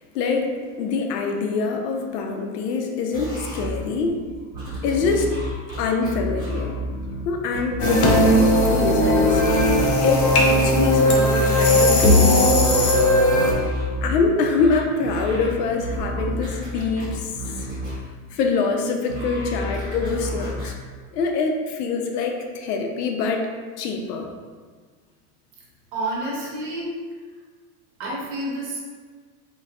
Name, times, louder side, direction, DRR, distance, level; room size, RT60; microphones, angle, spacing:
voice 1, 0.1-4.2 4.8-5.3 5.8-6.7 7.2-9.4 10.0-12.7 14.0-17.3 18.3-20.7 21.1-23.5 23.8-24.3 26.2-26.5, left 4 dB, 90° left, 3 dB, 0.7 m, -24 dB
sound 1, 3.1-18.7 19.1-20.7, equal, 10° right, 1.3 m, -31 dB
sound 2, 7.8-13.5, left 1 dB, 40° left, 0.4 m, -17 dB
voice 2, 25.9-26.9 28.0-28.8, right 2 dB, 55° right, -5 dB, 1.2 m, -29 dB
3.9 x 2.7 x 2.3 m, 1.5 s
supercardioid pair, 160°, 47 cm